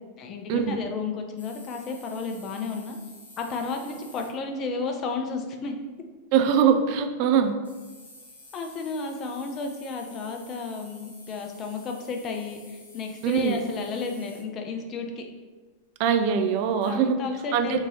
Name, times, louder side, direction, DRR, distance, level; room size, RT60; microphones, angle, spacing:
voice 1, 0.2-3.0 3.4-5.7 8.5-15.3 16.8-17.9, left 4 dB, 30° left, 3 dB, 0.5 m, -32 dB
sound 1, 1.4-4.3 6.4-6.5 7.6-14.4 16.8-16.9, left 1 dB, 75° left, 0.9 m, -50 dB
voice 2, 6.3-7.5 13.2-13.6 16.0-17.2 17.5-17.9, right 7 dB, 45° right, 6 dB, 0.3 m, -22 dB
2.9 x 2.7 x 4.0 m, 1.3 s
figure-of-eight pair, 90°, 0 cm